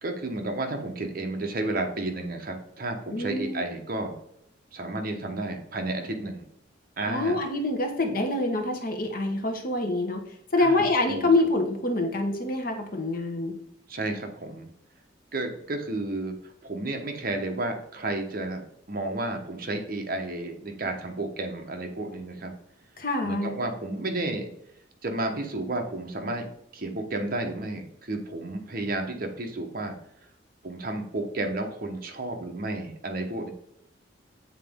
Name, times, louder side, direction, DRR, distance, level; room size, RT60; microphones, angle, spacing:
voice 1, 0.0-4.1 4.7-6.4 7.0-7.4 10.6-11.3 13.9-14.7 15.3-16.4 16.6-22.5 23.2-24.5 25.0-26.5 26.7-29.9 30.6-33.5, right 2 dB, 50° right, 4 dB, 1.0 m, -32 dB
voice 2, 3.1-3.7 7.1-10.2 10.5-13.5 23.0-23.5, left 2 dB, 50° left, 4 dB, 1.0 m, -26 dB
8.3 x 3.9 x 3.6 m, 0.77 s
head